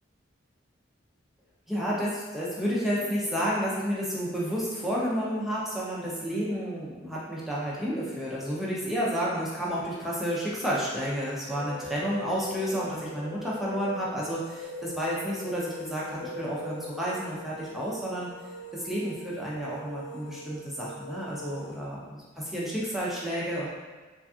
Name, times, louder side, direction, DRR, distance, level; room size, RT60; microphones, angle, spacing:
voice 1, 1.7-18.3 18.7-23.7, equal, ahead, -7 dB, 0.5 m, -31 dB
sound 1, 11.5-14.1 14.4-16.9, left 5 dB, 30° left, 0.9 m, -41 dB
sound 2, 14.4-21.8, right 1 dB, 70° left, 0.8 m, -44 dB
3.3 x 2.6 x 2.4 m, 1.3 s
head